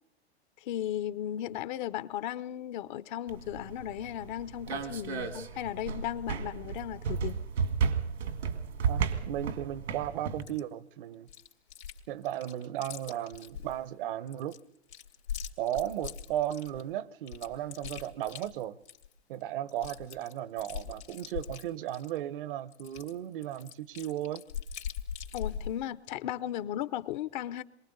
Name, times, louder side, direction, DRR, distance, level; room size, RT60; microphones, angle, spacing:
voice 1, 0.6-7.4 25.3-27.6, left 12 dB, 45° left, 0.7 m, -36 dB
sound 1, 3.3-10.4, right 6 dB, 80° right, 2.0 m, -33 dB
voice 2, 8.9-11.3 12.1-14.6 15.6-18.8 19.3-24.4, right 12 dB, 55° right, 0.9 m, -35 dB
Chewing mastication, 10.4-10.6 11.3-12.0 12.2-13.7 14.3-16.8 17.3-19.1 19.4-19.5 19.7-22.2 22.7-25.7, left 8 dB, 85° left, 2.8 m, -41 dB
28.0 x 23.0 x 4.0 m
hypercardioid pair, 110°, 32 cm